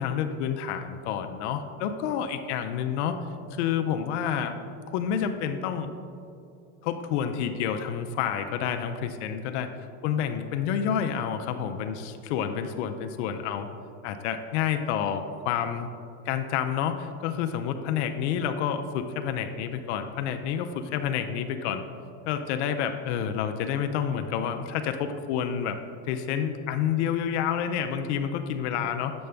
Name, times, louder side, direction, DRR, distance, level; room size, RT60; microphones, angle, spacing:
voice 1, 0.0-3.2 3.6-4.6 4.9-5.9 6.8-9.7 10.0-13.7 14.0-15.9 16.3-21.8 22.3-25.8 26.1-29.1, left 8 dB, 80° left, 7 dB, 0.5 m, -29 dB
7.7 x 5.3 x 3.4 m, 2.5 s
supercardioid pair, 115°, 34 cm